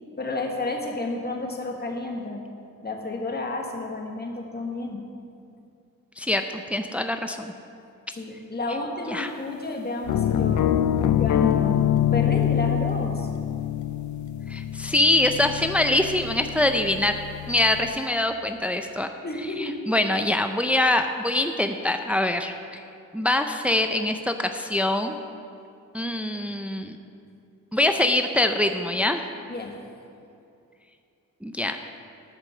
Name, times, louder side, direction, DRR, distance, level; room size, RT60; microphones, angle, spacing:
voice 1, 0.2-2.4 2.8-5.0 8.1-10.7 11.1-13.3 19.2-19.8 29.5-29.8, left 2 dB, 30° left, 1 dB, 1.5 m, -31 dB
voice 2, 6.2-7.5 9.1-9.3 14.5-17.1 17.5-19.1 19.6-22.8 23.1-25.2 25.9-27.0 27.7-29.2 31.4-31.8, left 1 dB, 5° right, 6 dB, 0.5 m, -24 dB
sound 1, 10.1-18.0, left 10 dB, 65° left, 0.5 m, -25 dB
10.5 x 5.2 x 7.3 m, 2.6 s
cardioid pair, 80°, 32 cm